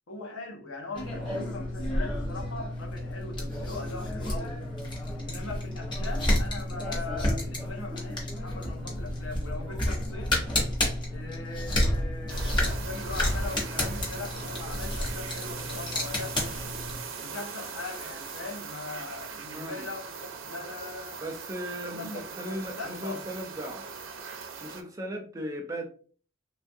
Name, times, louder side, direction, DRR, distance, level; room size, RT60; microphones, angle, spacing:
voice 1, 0.1-4.7 5.1-10.3 11.1-16.7 17.2-21.2 21.9-23.3, left 3 dB, 75° left, 0.7 m, -40 dB
sound 1, 0.9-17.0, left 1 dB, 25° left, 0.9 m, -31 dB
sound 2, 12.3-24.8, right 6 dB, 90° right, 0.6 m, -40 dB
voice 2, 19.5-19.9 21.2-23.9 24.3-25.9, equal, 15° right, 0.4 m, -37 dB
3.0 x 2.4 x 2.6 m
head